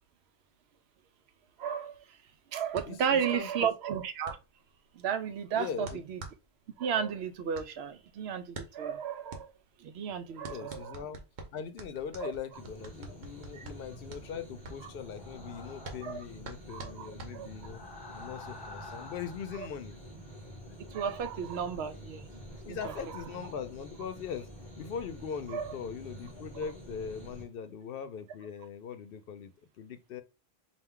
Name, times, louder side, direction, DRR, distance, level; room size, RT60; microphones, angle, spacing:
voice 1, 1.6-2.2 2.5-4.4 4.9-6.2 6.8-9.5 9.8-11.0 12.2-12.3 13.5-13.7 16.0-16.2 16.7-17.5 19.5-19.7 20.9-22.3 22.6-23.5 25.5-25.7, right 7 dB, 85° right, 0.8 m, -34 dB
sound 1, 2.7-17.8, right 3 dB, 50° right, 0.9 m, -48 dB
voice 2, 2.9-3.5 5.5-6.0 10.4-11.2 11.5-17.8 18.1-20.0 22.6-24.5 24.8-29.5 29.8-30.2, left 7 dB, 65° left, 0.7 m, -40 dB
sound 2, 12.5-27.4, equal, 25° right, 1.6 m, -48 dB
sound 3, 15.1-16.2 17.5-19.6, left 3 dB, 45° left, 0.3 m, -48 dB
4.4 x 2.4 x 3.6 m
omnidirectional pair, 1.1 m